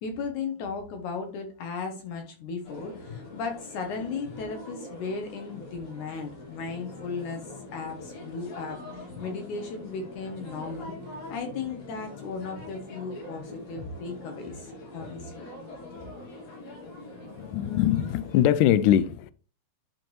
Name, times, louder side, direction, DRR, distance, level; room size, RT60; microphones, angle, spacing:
voice 1, 0.0-11.0 11.3-15.5, left 4 dB, 70° left, 2.1 m, -36 dB
sound 1, 2.6-18.5, left 2 dB, 50° left, 3.5 m, -43 dB
voice 2, 17.4-19.3, left 11 dB, 90° left, 1.8 m, -22 dB
11.5 x 4.4 x 3.1 m
omnidirectional pair, 4.3 m